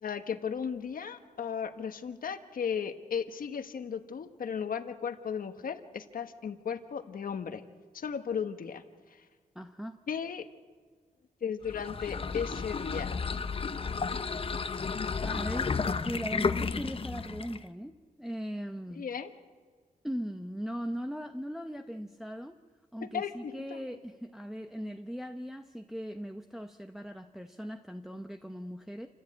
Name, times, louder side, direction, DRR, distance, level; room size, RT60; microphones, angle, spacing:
voice 1, 0.0-7.6 7.9-8.8 9.1-9.2 10.1-10.5 11.4-13.2 14.1-14.4 14.7-15.1 19.0-19.3 23.0-23.8, left 7 dB, 75° left, 8 dB, 1.4 m, -36 dB
voice 2, 9.5-10.0 15.2-19.1 20.0-22.5 22.9-29.1, equal, 5° right, 6 dB, 0.8 m, -39 dB
sound 1, 11.6-17.7, left 5 dB, 40° left, 0.9 m, -32 dB
28.0 x 15.0 x 8.7 m, 1.5 s
wide cardioid pair, 130°, 15 cm